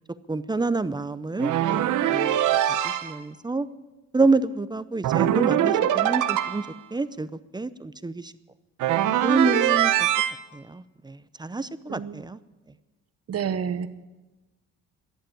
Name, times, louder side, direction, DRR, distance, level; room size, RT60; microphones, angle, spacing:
voice 1, 0.3-2.4 2.8-3.7 4.1-7.3 7.5-8.3 9.2-10.1 10.5-12.4, right 3 dB, 15° right, 15 dB, 0.6 m, -28 dB
sound 1, 1.4-3.2 5.0-6.7 8.8-10.3, right 11 dB, 85° right, 0.9 m, -23 dB
voice 2, 11.9-12.2 13.3-13.9, right 7 dB, 55° right, 12 dB, 1.1 m, -29 dB
13.5 x 10.5 x 8.6 m, 1.1 s
cardioid pair, 90°, 30 cm